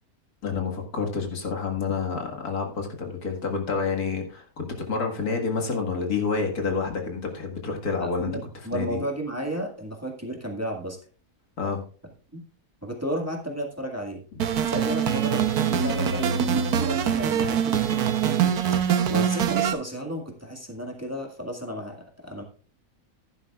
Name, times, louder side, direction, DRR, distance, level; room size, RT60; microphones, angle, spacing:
voice 1, 0.4-8.4 8.7-9.0 11.6-11.8, left 5 dB, 80° left, 2 dB, 2.3 m, -28 dB
voice 2, 8.0-11.0 12.3-12.4 12.8-14.2 14.6-18.5 19.1-22.4, right 1 dB, 10° right, 1 dB, 1.8 m, -33 dB
sound 1, 14.4-19.7, right 8 dB, 85° right, 1.4 m, -23 dB
14.5 x 11.0 x 2.4 m, 0.39 s
omnidirectional pair, 1.6 m